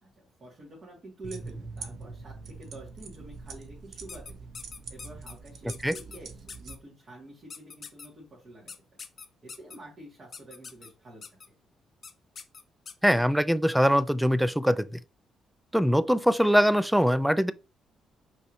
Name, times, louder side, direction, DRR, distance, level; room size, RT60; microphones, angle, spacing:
voice 1, 0.0-4.5 4.9-9.0 9.4-11.6, right 2 dB, 45° right, 1.9 m, -48 dB
sound 1, 1.2-6.8, right 4 dB, 65° right, 0.7 m, -43 dB
sound 2, 4.1-5.3 5.7-6.2 6.5-6.8 7.5-8.1 8.7-9.8 10.3-10.9 11.2-11.5 12.0-12.1 12.4-13.1, left 5 dB, 45° left, 0.6 m, -43 dB
voice 2, 13.0-14.9 15.7-17.5, equal, ahead, 0.3 m, -22 dB
5.3 x 3.2 x 2.6 m
cardioid pair, 90°, 0 cm